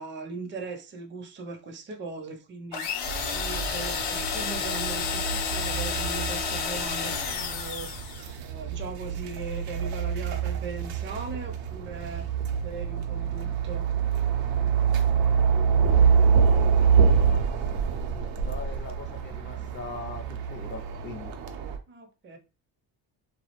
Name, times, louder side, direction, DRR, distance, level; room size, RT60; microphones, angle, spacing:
voice 1, 0.0-2.9 3.3-8.0 8.4-12.3 12.6-13.9 21.9-22.4, right 3 dB, 30° right, 0.5 m, -39 dB
sound 1, 2.7-8.3, left 6 dB, 70° left, 0.7 m, -31 dB
sound 2, 3.1-21.8, right 6 dB, 85° right, 0.5 m, -26 dB
voice 2, 15.0-21.3, left 3 dB, 30° left, 0.4 m, -43 dB
2.3 x 2.0 x 2.9 m
cardioid pair, 90°, 42 cm